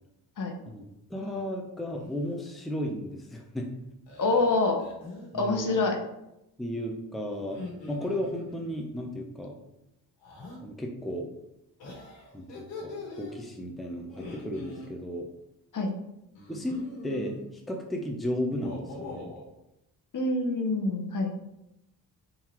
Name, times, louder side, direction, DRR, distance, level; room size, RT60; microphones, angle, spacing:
sound 1, 1.1-1.5 1.8-2.3 4.1-5.3 7.4-8.8 10.2-10.6 11.8-13.3 14.1-14.9 16.3-17.4 18.4-19.4, left 2 dB, 90° left, 1.4 m, -43 dB
voice 1, 1.1-3.7 5.3-5.8 6.6-7.6 7.9-9.5 10.6-11.3 12.3-15.3 16.5-17.4 17.7-19.3, equal, ahead, 1 dB, 0.7 m, -34 dB
voice 2, 4.2-4.8 5.3-6.0 15.7-15.9 20.1-21.3, left 2 dB, 45° left, 3 dB, 0.9 m, -26 dB
3.8 x 2.8 x 4.4 m, 0.88 s
supercardioid pair, 65°, 43 cm